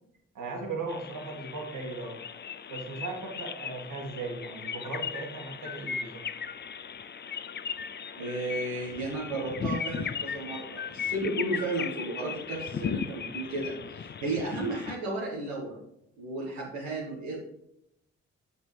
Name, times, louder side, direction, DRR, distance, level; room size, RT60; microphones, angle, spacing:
voice 1, 0.3-2.2 2.7-6.2, right 3 dB, 70° right, 0 dB, 2.2 m, -37 dB
sound 1, 0.9-15.0, left 7 dB, 30° left, 0.5 m, -37 dB
voice 2, 8.2-15.8 16.2-17.4, right 2 dB, 85° right, -6 dB, 1.5 m, -33 dB
7.2 x 6.7 x 3.4 m, 0.78 s
hypercardioid pair, 40°, 33 cm